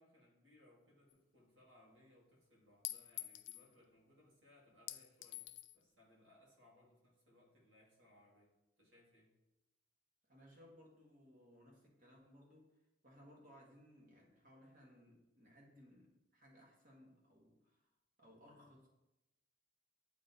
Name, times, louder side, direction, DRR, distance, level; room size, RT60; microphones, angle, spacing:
voice 1, 0.0-9.4, left 1 dB, 90° right, -4 dB, 1.9 m, -68 dB
Chink clink, 1.1-1.2 2.8-3.7 4.9-5.8, left 16 dB, 85° left, 0.3 m, -47 dB
voice 2, 10.3-12.7 13.0-17.9 18.2-18.9, equal, 45° right, -1 dB, 1.4 m, -63 dB
9.0 x 3.1 x 4.1 m, 0.95 s
head